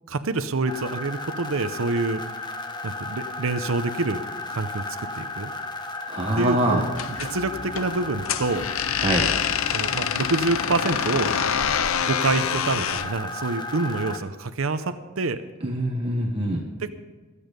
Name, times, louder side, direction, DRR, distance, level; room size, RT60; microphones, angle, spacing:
voice 1, 0.1-2.2 2.8-4.2 4.5-5.5 6.4-8.7 9.7-11.3 12.1-15.4 16.8-16.9, right 3 dB, 80° right, 10 dB, 0.8 m, -27 dB
sound 1, 0.7-14.2, left 2 dB, 20° left, 1.1 m, -34 dB
voice 2, 6.1-6.8 9.0-9.3 15.6-16.6, right 1 dB, 25° right, 0 dB, 1.4 m, -24 dB
sound 2, 6.9-13.1, left 8 dB, 85° left, 0.6 m, -26 dB
22.5 x 8.5 x 5.3 m, 1.3 s
head